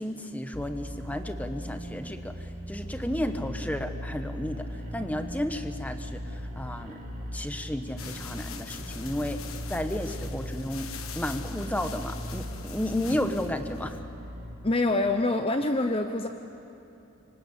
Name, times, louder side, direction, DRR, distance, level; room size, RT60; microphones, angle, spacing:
voice 1, 0.0-7.0 7.3-9.4 9.7-14.0, left 1 dB, 5° left, 7 dB, 1.1 m, -33 dB
sound 1, 0.5-14.5, equal, 35° right, 2.9 m, -38 dB
sound 2, 8.0-14.0, left 6 dB, 75° left, 1.5 m, -43 dB
voice 2, 14.6-16.3, left 2 dB, 25° left, 6 dB, 0.8 m, -25 dB
26.5 x 24.5 x 8.4 m, 2.9 s
head